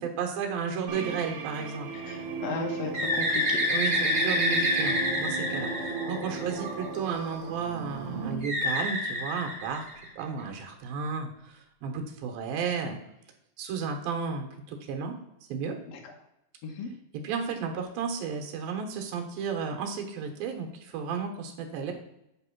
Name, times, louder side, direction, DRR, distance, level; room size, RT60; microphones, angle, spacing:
voice 1, 0.0-1.9 3.7-9.9 10.2-13.0 13.6-15.1 15.5-15.8 17.1-21.9, right 6 dB, 85° right, 3 dB, 2.9 m, -33 dB
sound 1, 0.9-8.4, right 4 dB, 65° right, 2.6 m, -36 dB
voice 2, 2.0-3.6 15.9-16.1 16.6-16.9 21.9-22.0, left 4 dB, 75° left, 2 dB, 1.5 m, -36 dB
Bird, 2.9-6.7 8.4-10.2, equal, 25° right, 1.6 m, -27 dB
8.9 x 3.6 x 6.0 m, 0.84 s
omnidirectional pair, 4.1 m